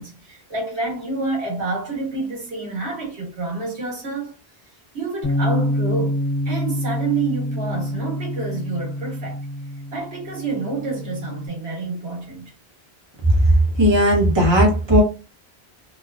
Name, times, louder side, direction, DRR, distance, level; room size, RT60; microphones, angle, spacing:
voice 1, 0.0-4.4 4.9-6.2 6.4-9.4 9.9-12.5, right 3 dB, 80° right, 1.4 m, -28 dB
Bass guitar, 5.2-11.5, left 1 dB, 65° left, 1.1 m, -26 dB
voice 2, 13.8-15.0, equal, 25° right, 1.0 m, -16 dB
3.1 x 2.2 x 2.4 m
omnidirectional pair, 1.1 m